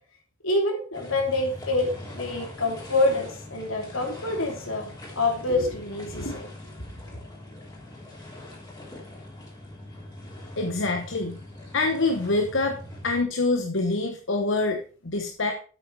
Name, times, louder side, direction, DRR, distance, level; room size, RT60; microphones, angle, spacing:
voice 1, 0.4-4.9 5.2-6.5, left 2 dB, 80° left, 2 dB, 3.1 m, -26 dB
sound 1, 0.9-13.2, left 1 dB, 20° left, 3.2 m, -42 dB
voice 2, 10.6-11.4 11.7-12.8 13.0-15.5, left 2 dB, 65° left, 4 dB, 1.1 m, -25 dB
8.7 x 8.2 x 4.6 m, 0.40 s
head